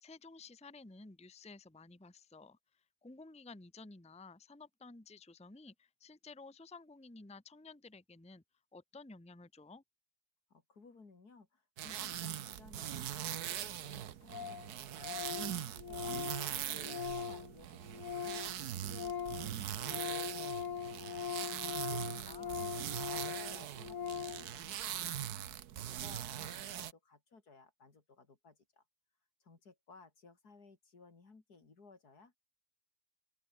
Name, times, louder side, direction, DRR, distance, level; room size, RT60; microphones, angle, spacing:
voice 1, 0.0-8.4 8.7-9.8 21.5-22.0 22.2-22.6, left 3 dB, 5° left, 1.1 m, -54 dB
voice 2, 10.5-18.4 18.7-22.7 23.0-25.5 25.8-28.8 29.4-32.4, left 4 dB, 75° left, 3.8 m, -60 dB
sound 1, 11.8-26.9, right 10 dB, 75° right, 1.5 m, -41 dB
Organ, 13.3-13.4 13.6-13.7 13.9-14.0 14.3-14.7 15.0-18.6 18.8-24.5, left 8 dB, 55° left, 1.5 m, -41 dB
open air
omnidirectional pair, 1.7 m